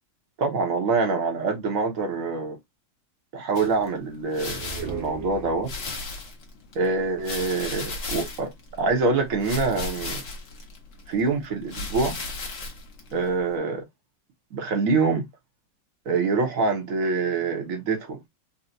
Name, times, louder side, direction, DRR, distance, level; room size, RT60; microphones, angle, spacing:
voice 1, 0.4-2.6 3.3-5.7 6.7-8.5 8.8-10.2 11.1-12.2 13.1-13.8 14.5-15.3 16.1-18.2, right 4 dB, 60° right, 0.9 m, -25 dB
sound 1, 3.6-13.6, left 3 dB, 50° left, 1.0 m, -37 dB
sound 2, 4.5-6.0, right 5 dB, 80° right, 1.7 m, -36 dB
4.0 x 2.1 x 2.6 m
omnidirectional pair, 2.3 m